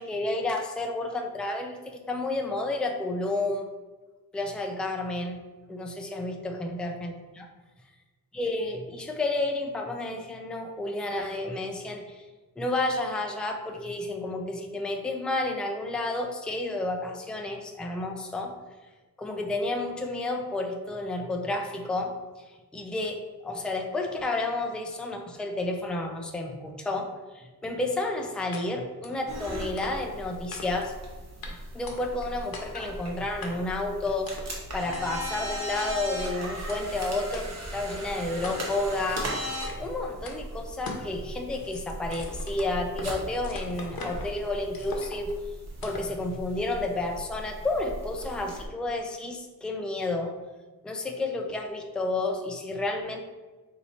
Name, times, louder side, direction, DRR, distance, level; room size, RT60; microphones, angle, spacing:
voice 1, 0.0-3.7 4.3-5.4 5.7-7.5 8.3-12.3 12.6-18.6 19.2-30.9 31.5-39.3 39.8-45.3 45.8-50.3 50.8-53.2, left 2 dB, 5° left, 2 dB, 0.4 m, -31 dB
sound 1, 28.5-28.6 29.0-29.2 29.8-30.2 30.5-31.0 31.4-31.5 31.9-32.3 32.5-32.9 33.4-33.8 34.3-34.5 34.9-35.0 35.8-36.2 36.7-36.8 37.3-37.4 37.9-38.0 38.4-38.8 39.5-39.9 40.3-40.4 40.9-41.1 41.4-43.1 43.4-44.3 44.7-45.3 45.8-46.1, left 3 dB, 75° left, 0.8 m, -41 dB
sound 2, 29.3-48.6, equal, 45° right, 1.0 m, -38 dB
4.3 x 2.8 x 4.2 m, 1.2 s
wide cardioid pair, 135°, 36 cm